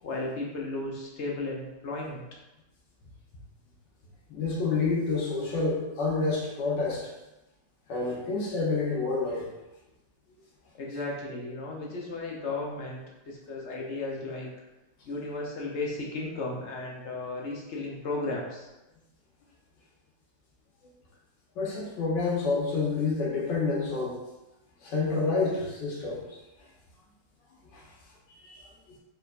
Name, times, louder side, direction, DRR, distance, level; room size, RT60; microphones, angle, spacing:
voice 1, 0.0-2.2 10.7-14.5 15.0-18.7, left 2 dB, 55° left, -2 dB, 0.8 m, -35 dB
voice 2, 4.3-7.1 7.9-9.4 21.6-24.2 24.8-26.2 27.7-27.8 28.4-28.7, left 4 dB, 75° left, -3 dB, 1.6 m, -28 dB
4.4 x 4.1 x 2.4 m, 1.0 s
omnidirectional pair, 1.9 m